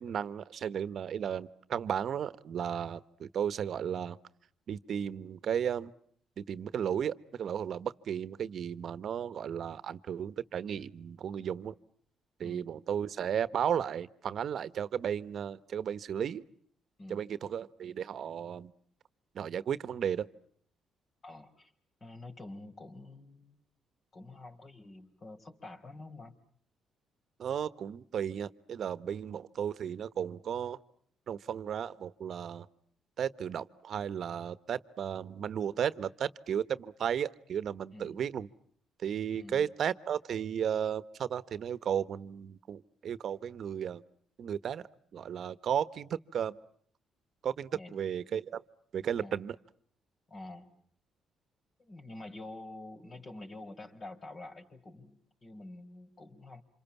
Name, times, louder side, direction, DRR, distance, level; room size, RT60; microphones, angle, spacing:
voice 1, 0.0-4.2 4.7-5.9 6.4-11.7 12.4-16.4 17.1-18.7 19.3-20.3 27.4-30.8 31.3-32.7 33.2-38.5 39.0-44.0 44.4-46.6 47.4-48.6 48.9-49.6, right 8 dB, 60° right, 15 dB, 1.3 m, -34 dB
voice 2, 21.2-21.7 22.0-23.6 24.1-26.3 29.1-29.4 37.9-38.1 39.3-39.7 47.7-48.0 49.2-49.4 50.3-50.7 51.8-56.6, left 2 dB, 35° left, 6 dB, 5.0 m, -47 dB
29.0 x 27.0 x 7.2 m, 0.62 s
cardioid pair, 90°, 0 cm